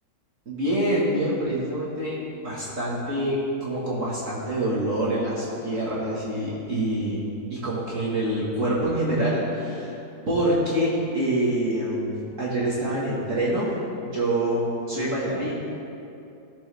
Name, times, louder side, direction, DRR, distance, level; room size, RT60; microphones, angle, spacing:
voice 1, 0.5-2.2 2.4-10.0 10.3-13.7 14.0-15.5, right 1 dB, 45° right, -7 dB, 2.1 m, -26 dB
17.5 x 7.1 x 3.5 m, 2.7 s
omnidirectional pair, 1.9 m